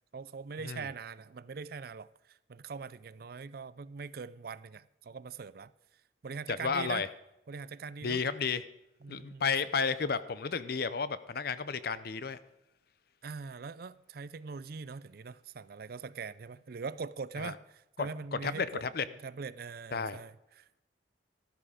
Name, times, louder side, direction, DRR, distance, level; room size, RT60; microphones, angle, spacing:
voice 1, 0.1-5.7 6.2-7.1 7.5-8.2 9.0-9.4 13.2-18.9 19.2-20.8, right 5 dB, 55° right, 0.5 m, -42 dB
voice 2, 6.5-7.1 8.0-8.6 9.1-12.4 17.4-17.5 18.0-19.0 19.9-20.2, left 5 dB, 55° left, 0.7 m, -32 dB
13.5 x 12.5 x 5.0 m
head